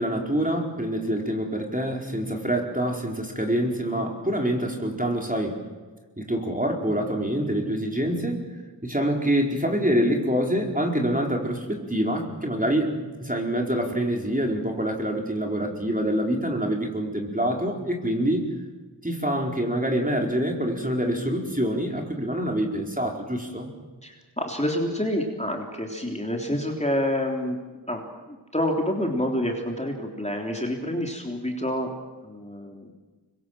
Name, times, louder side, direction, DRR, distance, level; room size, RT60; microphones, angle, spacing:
voice 1, 0.0-5.6 6.2-8.5 8.8-12.9 13.2-18.5 19.0-23.7, right 1 dB, 20° right, 1 dB, 4.6 m, -26 dB
voice 2, 24.0-27.6 27.9-28.0 28.3-31.9 32.2-32.9, left 1 dB, 15° left, 1 dB, 3.5 m, -28 dB
25.5 x 22.5 x 7.6 m, 1.3 s
wide cardioid pair, 40°, 43 cm